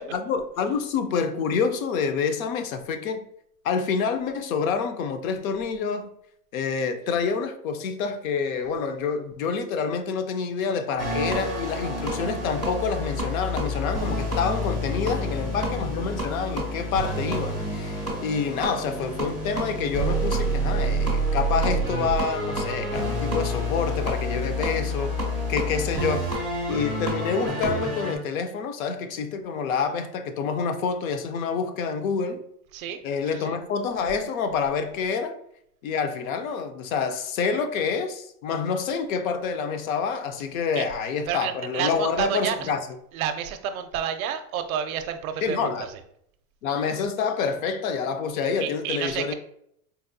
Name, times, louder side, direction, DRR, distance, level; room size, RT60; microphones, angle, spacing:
voice 1, 0.1-3.2 3.6-6.1 6.5-26.3 26.7-32.4 33.0-35.4 35.8-42.8 45.4-45.9 46.6-49.3, left 5 dB, 65° left, 0.6 m, -27 dB
sound 1, 11.0-28.2, equal, 10° left, 0.3 m, -28 dB
voice 2, 33.3-33.6 40.8-40.9 41.3-42.7 43.1-46.0 48.6-49.3, right 9 dB, 65° right, 0.5 m, -30 dB
4.0 x 2.2 x 2.6 m
supercardioid pair, 145°, 46 cm